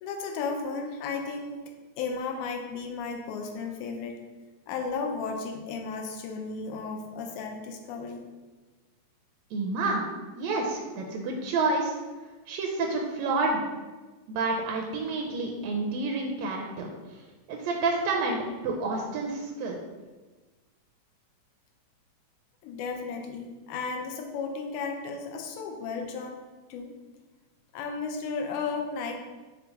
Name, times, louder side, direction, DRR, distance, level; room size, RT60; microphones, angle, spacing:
voice 1, 0.0-1.6 2.0-4.2 4.7-8.2 22.6-26.4 26.7-27.0 27.7-29.2, left 4 dB, 80° left, 3 dB, 1.9 m, -34 dB
voice 2, 9.5-10.0 10.4-12.0 12.5-13.6 14.3-17.2 17.5-19.8, right 3 dB, 85° right, 0 dB, 1.5 m, -29 dB
5.4 x 2.3 x 3.9 m, 1.3 s
omnidirectional pair, 3.4 m